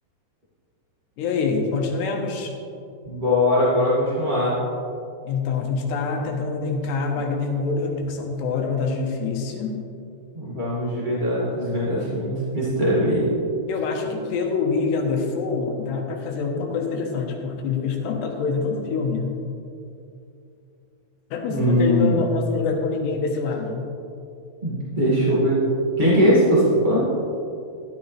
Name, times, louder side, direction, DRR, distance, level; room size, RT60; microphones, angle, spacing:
voice 1, 1.2-2.5 5.2-9.8 13.7-19.4 21.3-23.9, left 4 dB, 75° left, 1 dB, 3.2 m, -25 dB
voice 2, 3.0-4.6 10.3-13.2 21.5-22.1 24.6-25.6 26.0-27.0, equal, 25° right, -9 dB, 0.9 m, -20 dB
13.0 x 12.0 x 3.3 m, 2.6 s
omnidirectional pair, 5.1 m